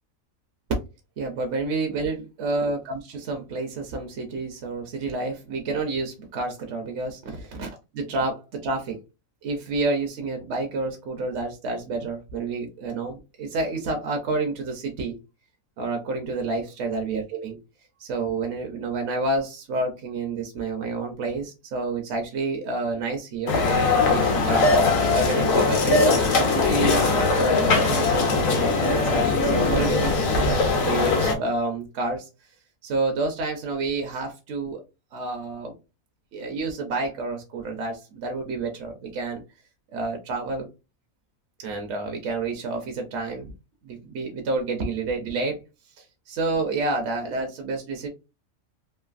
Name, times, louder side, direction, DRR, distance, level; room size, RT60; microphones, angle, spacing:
voice 1, 1.2-9.0 9.4-15.2 15.8-17.6 18.0-23.6 24.1-24.7 25.1-32.3 32.8-34.8 35.1-35.8 36.3-39.4 39.9-40.7 41.6-43.5 43.8-45.6 46.0-48.1, right 3 dB, 65° right, 4 dB, 0.8 m, -29 dB
sound 1, 23.5-31.3, left 3 dB, 75° left, 1.1 m, -21 dB
3.1 x 2.5 x 2.4 m, 0.28 s
omnidirectional pair, 1.4 m